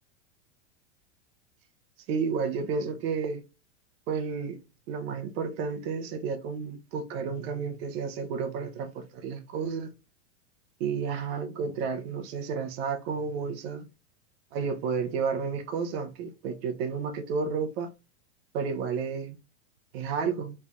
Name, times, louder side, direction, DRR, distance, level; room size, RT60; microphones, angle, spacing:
voice 1, 2.1-3.4 4.1-4.6 4.9-9.9 10.8-13.9 14.5-17.9 18.5-19.4 19.9-20.5, right 5 dB, 55° right, 0.8 m, -31 dB
3.3 x 2.6 x 3.5 m
hypercardioid pair, 130°, 37 cm